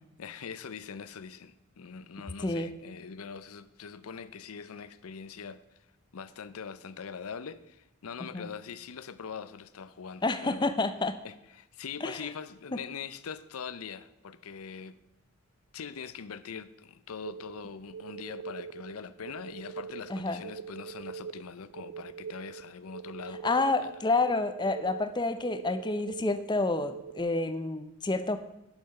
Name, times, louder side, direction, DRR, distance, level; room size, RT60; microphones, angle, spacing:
voice 1, 0.0-5.6 6.1-10.7 11.2-15.0 15.7-23.4 23.8-23.9, left 6 dB, 80° left, 0.5 m, -42 dB
voice 2, 10.2-11.1 12.0-12.3 12.7-12.8 20.1-20.4 23.4-28.4, left 3 dB, 20° left, 0.5 m, -29 dB
sound 1, 17.2-27.2, right 6 dB, 65° right, 0.3 m, -43 dB
11.5 x 5.9 x 5.3 m
head